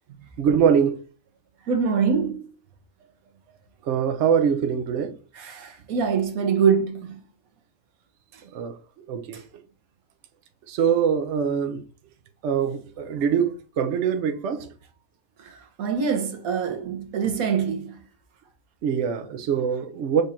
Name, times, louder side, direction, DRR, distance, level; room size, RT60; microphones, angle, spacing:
voice 1, 0.4-1.0 3.8-5.1 8.5-8.8 9.1-9.4 10.7-11.8 12.4-14.7 18.8-20.2, right 7 dB, 65° right, 0.9 m, -23 dB
voice 2, 1.7-2.5 5.3-7.2 9.3-9.4 15.4-18.0, right 6 dB, 80° right, 1.3 m, -24 dB
5.2 x 2.5 x 4.2 m
omnidirectional pair, 1.5 m